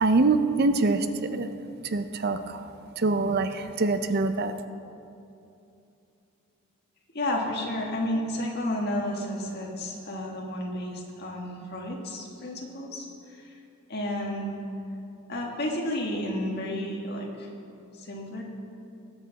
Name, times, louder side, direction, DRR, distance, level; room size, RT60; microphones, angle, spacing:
voice 1, 0.0-1.5 1.8-2.7 3.0-4.5, right 3 dB, 45° right, 9 dB, 0.5 m, -24 dB
voice 2, 7.1-13.6 13.9-14.6 15.3-17.5 17.9-18.4, left 1 dB, 50° left, -1 dB, 1.7 m, -32 dB
19.5 x 8.0 x 4.0 m, 2.7 s
head